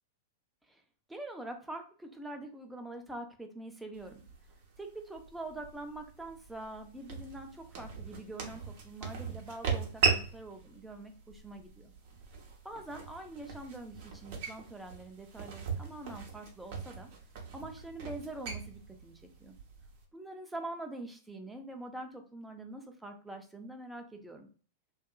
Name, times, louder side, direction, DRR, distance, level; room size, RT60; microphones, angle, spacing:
voice 1, 1.1-4.2 4.8-11.9 12.6-17.1 17.5-19.6 20.1-24.5, right 2 dB, 5° right, 4 dB, 0.6 m, -44 dB
sound 1, 3.9-20.0, right 6 dB, 55° right, 0.8 m, -39 dB
2.6 x 2.5 x 2.3 m, 0.41 s
hypercardioid pair, 100°, 0 cm